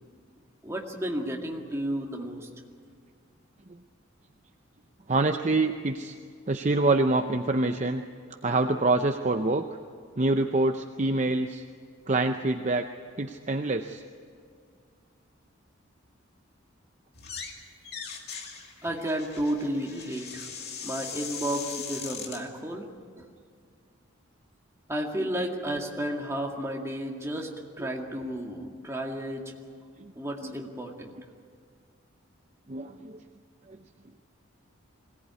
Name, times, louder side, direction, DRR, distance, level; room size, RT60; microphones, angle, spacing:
voice 1, 0.6-2.5 18.8-20.5 20.8-22.9 23.2-23.3 24.9-27.5 27.8-29.5 30.2-31.2, right 1 dB, 15° right, 0 dB, 2.1 m, -32 dB
voice 2, 5.1-6.2 6.5-8.0 8.4-9.6 10.2-11.6 12.1-12.9 13.2-14.0 25.2-25.3 27.8-27.9 30.4-30.6 32.7-33.2 33.7-33.8, right 2 dB, 35° right, 6 dB, 0.6 m, -26 dB
sound 1, 17.1-17.6 17.8-22.4, left 6 dB, 50° left, 2.5 m, -39 dB
22.0 x 18.0 x 9.6 m, 2.1 s
head